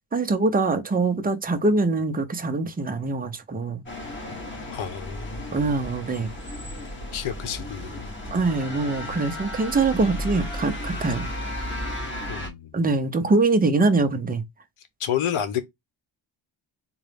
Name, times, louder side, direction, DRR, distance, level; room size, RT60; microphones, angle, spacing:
voice 1, 0.1-3.8 5.5-6.3 8.3-11.3 12.7-14.4, right 3 dB, 20° right, 0.7 m, -23 dB
sound 1, 3.9-12.5, left 1 dB, 25° left, 1.5 m, -34 dB
voice 2, 4.7-5.5 7.1-8.1 12.3-12.7 15.0-15.6, left 9 dB, 85° left, 0.9 m, -29 dB
3.9 x 2.4 x 3.4 m
cardioid pair, 100°, 49 cm